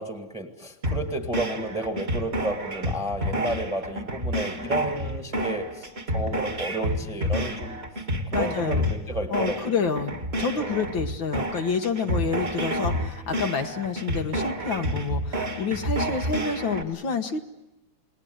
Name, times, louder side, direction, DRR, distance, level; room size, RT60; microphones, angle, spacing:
voice 1, 0.0-5.9 6.1-7.8 8.3-9.7 10.6-10.8, right 1 dB, 5° right, 6 dB, 1.6 m, -32 dB
sound 1, 0.8-16.8, equal, 35° right, 2.1 m, -29 dB
voice 2, 8.3-8.9 9.3-10.1 10.4-17.4, left 5 dB, 80° left, 5 dB, 2.1 m, -28 dB
28.5 x 20.0 x 7.9 m, 0.95 s
omnidirectional pair, 2.1 m